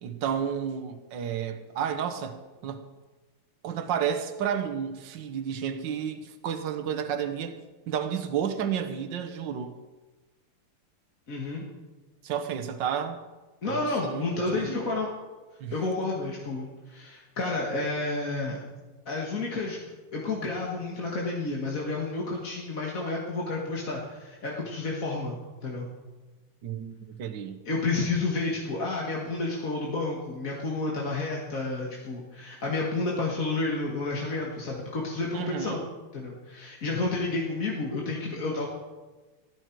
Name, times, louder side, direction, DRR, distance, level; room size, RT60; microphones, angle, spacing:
voice 1, 0.0-2.8 3.6-7.6 7.9-9.7 12.2-13.2 13.6-14.3 14.5-14.8 15.6-15.7 26.6-27.6 35.3-35.8, right 8 dB, 60° right, 1.7 m, -31 dB
voice 2, 11.3-11.6 13.6-15.1 15.7-18.6 19.1-19.8 20.1-25.9 27.7-35.8 36.1-38.7, left 3 dB, 40° left, 2.1 m, -30 dB
15.5 x 13.0 x 4.6 m
omnidirectional pair, 2.4 m